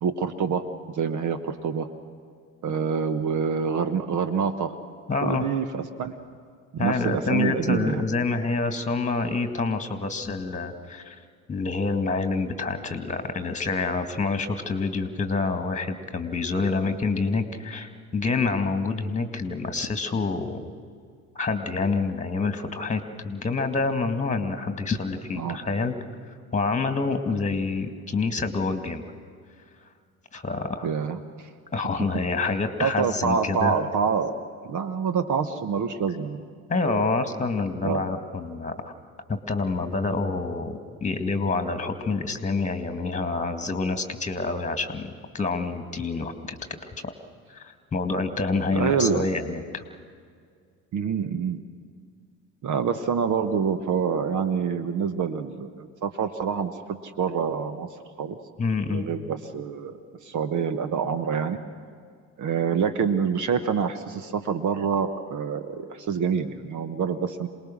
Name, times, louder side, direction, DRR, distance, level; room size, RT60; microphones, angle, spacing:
voice 1, 0.0-1.9 2.6-4.7 5.2-6.1 6.7-8.0 25.4-25.6 30.8-31.5 32.4-32.5 32.8-36.5 36.8-37.1 37.8-38.0 48.7-49.3 50.9-51.6 52.6-57.9 58.2-58.4 58.9-60.0 60.2-61.6 62.4-67.5, right 6 dB, 40° right, 11 dB, 1.2 m, -26 dB
voice 2, 5.1-5.5 6.8-11.2 11.5-20.7 21.4-25.9 26.5-29.0 30.3-30.9 31.7-33.8 36.7-38.9 39.3-46.6 47.0-47.1 47.5-49.8 58.6-59.1, left 3 dB, 15° left, 8 dB, 2.0 m, -27 dB
27.5 x 19.5 x 6.4 m, 2.1 s
figure-of-eight pair, 55°, 44 cm